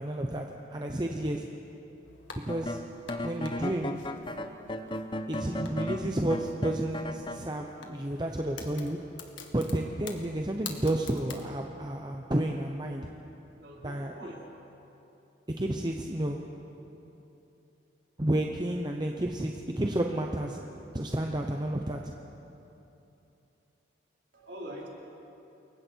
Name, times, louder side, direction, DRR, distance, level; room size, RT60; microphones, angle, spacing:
voice 1, 0.0-1.5 2.4-2.8 3.2-4.0 5.3-9.0 9.5-13.1 13.8-14.3 15.6-16.4 18.2-20.6 20.9-22.1, right 1 dB, 20° right, 2 dB, 0.9 m, -31 dB
sound 1, 2.0-11.5, left 5 dB, 85° left, 2.0 m, -49 dB
sound 2, 2.5-7.4, left 1 dB, 25° left, 0.8 m, -35 dB
voice 2, 13.6-14.4 24.3-24.9, right 1 dB, 65° right, -4 dB, 4.4 m, -43 dB
29.0 x 22.5 x 4.6 m, 3.0 s
head